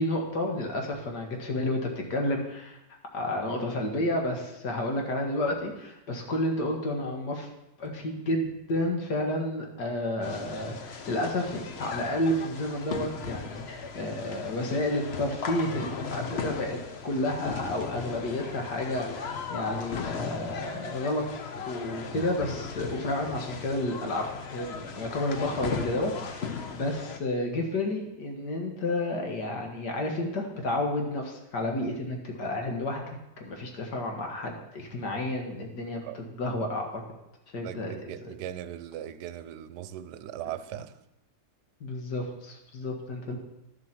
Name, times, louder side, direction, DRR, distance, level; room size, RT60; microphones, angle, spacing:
voice 1, 0.0-2.8 3.1-7.5 7.8-37.0 37.5-38.2 41.8-43.4, left 1 dB, 80° left, 2.3 m, -31 dB
sound 1, 10.2-27.2, left 5 dB, 50° left, 0.9 m, -37 dB
voice 2, 37.6-40.9, right 11 dB, 80° right, 1.2 m, -39 dB
11.0 x 7.7 x 6.0 m
omnidirectional pair, 1.8 m